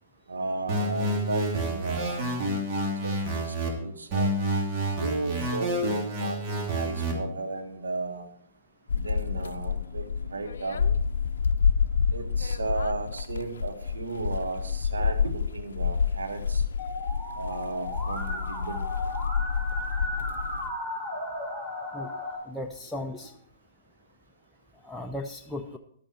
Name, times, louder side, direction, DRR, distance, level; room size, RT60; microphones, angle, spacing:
voice 1, 0.3-2.3 2.5-4.3 5.0-8.3 8.9-10.8 12.1-16.6 17.4-18.9, right 3 dB, 85° right, 6 dB, 1.4 m, -34 dB
sound 1, 0.7-3.7 4.1-7.1, right 1 dB, 35° right, 2.7 m, -29 dB
sound 2, 8.9-20.7, left 6 dB, 75° left, 0.5 m, -28 dB
Musical instrument, 16.8-22.3, left 1 dB, 15° right, 4.8 m, -35 dB
voice 2, 22.5-23.3 24.8-25.8, left 1 dB, 5° left, 2 dB, 0.6 m, -36 dB
11.5 x 8.8 x 4.4 m, 0.69 s
hypercardioid pair, 125°, 0 cm